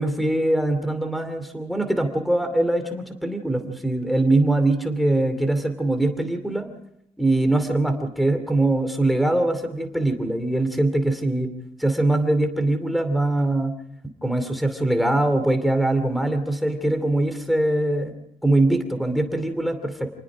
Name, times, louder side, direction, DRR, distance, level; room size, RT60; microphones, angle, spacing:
voice 1, 0.0-6.7 7.2-11.5 11.8-13.7 14.2-18.1 18.4-20.1, right 2 dB, ahead, 9 dB, 2.6 m, -22 dB
28.0 x 19.5 x 5.0 m, 0.77 s
wide cardioid pair, 175°, 12 cm